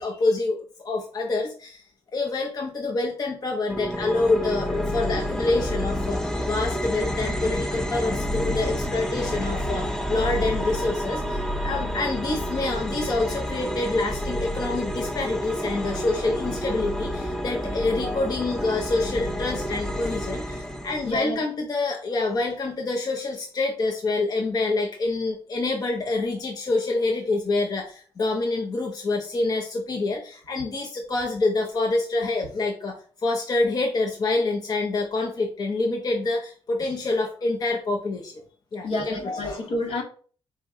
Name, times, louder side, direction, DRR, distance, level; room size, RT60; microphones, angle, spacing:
voice 1, 0.0-1.8 2.1-6.2 6.5-32.9 33.2-38.3 38.7-39.2 39.4-39.6, left 3 dB, 40° left, 2 dB, 0.7 m, -26 dB
sound 1, 3.7-21.1, equal, 5° left, 0.6 m, -29 dB
voice 2, 21.0-21.4 38.8-40.0, left 2 dB, 70° left, 1 dB, 1.4 m, -29 dB
4.2 x 2.9 x 3.6 m, 0.43 s
cardioid pair, 100°, 10 cm